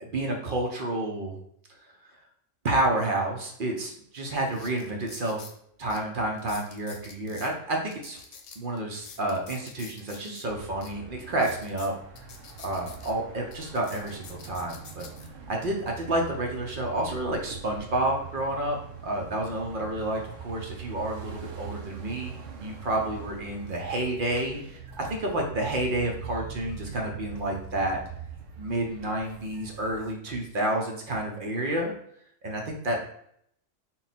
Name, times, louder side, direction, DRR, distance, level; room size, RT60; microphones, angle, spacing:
voice 1, 0.0-1.4 2.6-5.4 5.8-8.2 8.6-11.9 12.6-15.1 15.5-24.6 25.0-28.0 28.6-31.9 32.4-33.0, right 1 dB, 50° right, 1 dB, 0.7 m, -30 dB
sound 1, 3.8-3.9 4.4-5.6 5.9-6.0 6.4-7.5 7.9-10.4 10.8-10.9 11.3-13.1 13.5-15.3 15.9-16.2, left 6 dB, 80° left, 1.0 m, -47 dB
sound 2, 10.4-30.1, right 7 dB, 85° right, 1.0 m, -43 dB
3.9 x 2.2 x 4.1 m, 0.70 s
omnidirectional pair, 1.3 m